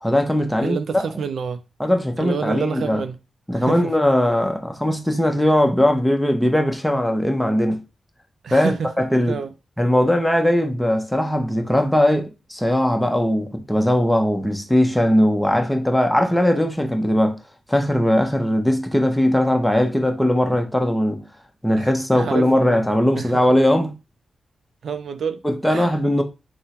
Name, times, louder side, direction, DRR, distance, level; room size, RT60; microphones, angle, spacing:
voice 1, 0.0-1.0 1.8-3.0 3.5-7.8 8.5-9.4 9.8-17.4 17.7-21.2 21.6-23.9 25.4-26.2, left 1 dB, 5° left, 0.7 m, -19 dB
voice 2, 0.6-1.6 2.2-3.2 3.5-3.9 8.4-8.9 9.3-9.5 21.8-21.9 22.1-22.8 23.2-23.4 24.8-25.4 25.7-25.9, right 6 dB, 70° right, 0.3 m, -28 dB
3.5 x 2.0 x 4.2 m
cardioid pair, 85°, 0 cm